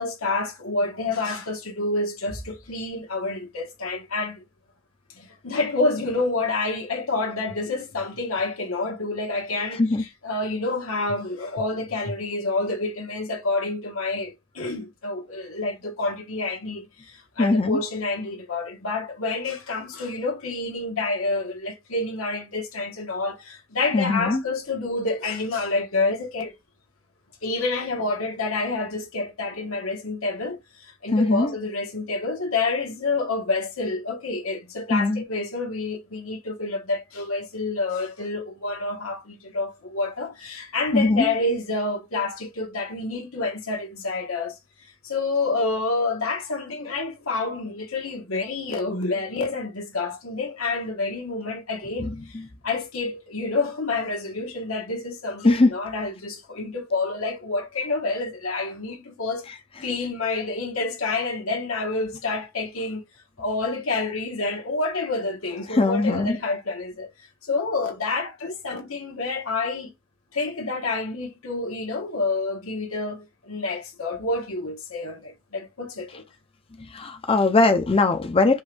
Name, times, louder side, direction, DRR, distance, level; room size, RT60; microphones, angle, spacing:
voice 1, 0.0-4.4 5.1-9.8 10.2-26.5 27.4-44.5 45.0-59.5 59.8-63.0 63.4-67.1 67.4-69.9 70.3-76.3, left 3 dB, 90° left, 1.6 m, -28 dB
voice 2, 9.7-10.0 17.4-17.8 23.9-24.4 31.1-31.5 34.9-35.2 40.9-41.3 52.0-52.4 55.4-55.7 59.5-59.8 65.7-66.4 76.8-78.6, left 2 dB, 25° left, 0.5 m, -21 dB
5.3 x 2.6 x 3.3 m
head